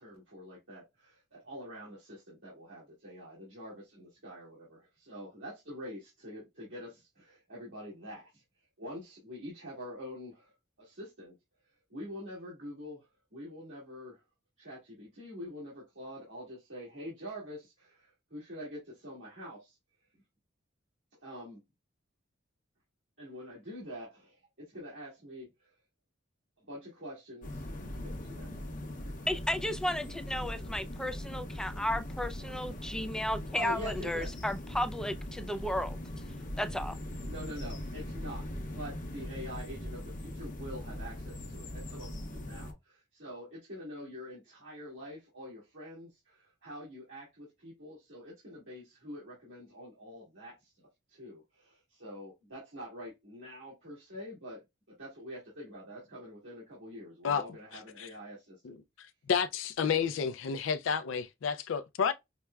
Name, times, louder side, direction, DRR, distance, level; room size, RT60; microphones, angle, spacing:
voice 1, 0.0-8.4 8.8-10.5 10.8-11.3 11.9-14.2 14.6-19.8 21.2-21.6 23.2-25.7 26.7-29.3 30.3-30.9 33.5-34.3 36.3-36.5 37.2-38.5 38.7-54.6 54.9-58.8, equal, 80° right, 1.8 m, -46 dB
sound 1, 27.4-42.7, left 1 dB, 45° left, 0.8 m, -40 dB
voice 2, 29.3-36.0 36.6-36.9, left 1 dB, 5° left, 0.3 m, -34 dB
voice 3, 59.3-62.1, left 6 dB, 80° left, 0.4 m, -30 dB
5.8 x 2.1 x 2.2 m
head